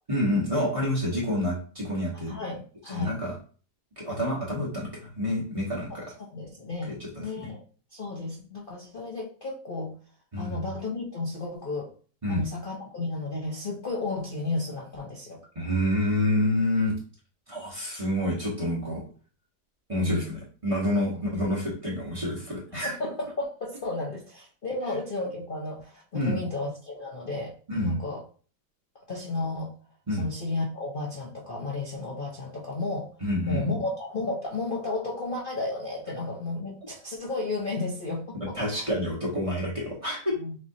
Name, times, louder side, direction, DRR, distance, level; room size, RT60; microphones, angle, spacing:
voice 1, 0.1-2.4 2.9-3.4 4.0-6.1 6.9-7.1 10.3-10.5 12.2-12.4 15.5-16.9 17.5-19.0 19.9-22.9 26.1-26.4 27.7-27.9 30.1-30.2 33.2-33.8 38.5-40.3, left 1 dB, 20° right, -5 dB, 1.2 m, -28 dB
voice 2, 2.1-3.2 6.2-7.6 7.9-9.9 10.4-11.9 12.3-15.4 20.0-20.4 21.1-21.2 22.8-27.5 27.8-28.2 29.1-29.7 30.2-33.1 33.5-38.9 40.4-40.6, left 3 dB, 40° left, -3 dB, 0.8 m, -33 dB
6.5 x 2.7 x 2.7 m, 0.40 s
omnidirectional pair, 1.8 m